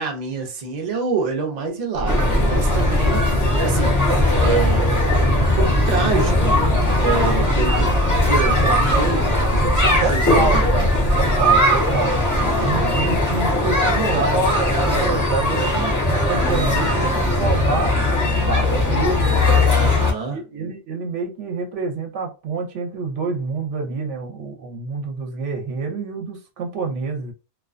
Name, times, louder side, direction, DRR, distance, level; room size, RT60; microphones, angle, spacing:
voice 1, 0.0-3.2 3.6-3.9 4.4-4.9 5.2-7.9 8.2-9.3 9.6-10.7 12.4-13.0 18.2-19.4 19.7-20.4, right 5 dB, 50° right, 0.5 m, -27 dB
sound 1, 1.9-11.4, equal, 85° left, 0.3 m, -24 dB
sound 2, 2.1-20.1, left 1 dB, 20° left, 0.5 m, -19 dB
voice 2, 10.0-19.6 20.3-27.3, right 4 dB, 70° right, 0.9 m, -27 dB
2.3 x 2.2 x 2.4 m
omnidirectional pair, 1.4 m